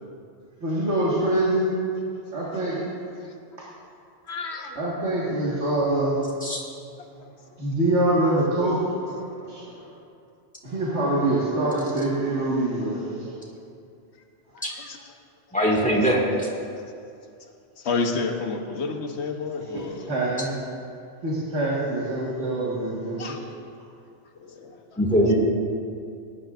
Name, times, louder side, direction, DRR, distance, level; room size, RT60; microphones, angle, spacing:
voice 1, 0.6-1.8 2.3-2.8 4.8-6.5 7.6-9.9 10.6-13.3 19.7-20.5 21.2-23.4, right 1 dB, 85° right, -7 dB, 2.1 m, -25 dB
voice 2, 4.3-4.8 7.2-7.3 14.5-15.0 17.8-20.1 23.2-23.4 24.4-25.0, left 4 dB, 80° left, 4 dB, 1.2 m, -30 dB
voice 3, 15.5-16.5 25.0-25.3, equal, 5° left, -4 dB, 1.9 m, -21 dB
19.5 x 11.0 x 2.5 m, 2.4 s
omnidirectional pair, 1.1 m